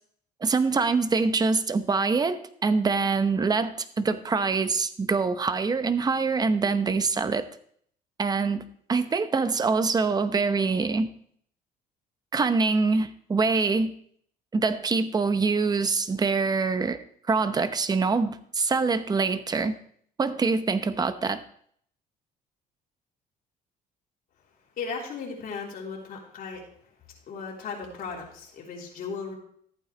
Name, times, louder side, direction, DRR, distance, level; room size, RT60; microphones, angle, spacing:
voice 1, 0.4-7.5 8.2-11.1 12.3-13.9 14.5-17.0 17.3-19.7 20.2-21.4, right 4 dB, 25° right, 11 dB, 0.8 m, -24 dB
voice 2, 24.8-26.6 27.3-29.3, left 5 dB, 60° left, -2 dB, 3.6 m, -36 dB
14.0 x 8.9 x 3.3 m, 0.62 s
cardioid pair, 110°, 17 cm